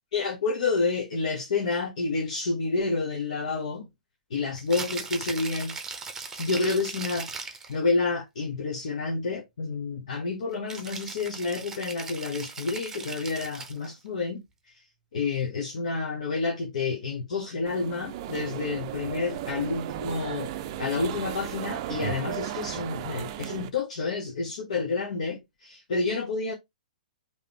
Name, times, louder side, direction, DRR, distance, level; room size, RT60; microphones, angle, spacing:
voice 1, 0.1-3.9 4.3-5.7 6.4-14.8 15.1-20.5 20.8-26.5, left 4 dB, 60° left, 1.1 m, -29 dB
Rattle (instrument), 4.6-7.8 10.7-13.9, right 4 dB, 10° right, 0.9 m, -38 dB
sound 1, 17.7-23.7, right 12 dB, 40° right, 0.4 m, -35 dB
5.0 x 3.1 x 2.9 m
figure-of-eight pair, 115°, 4 cm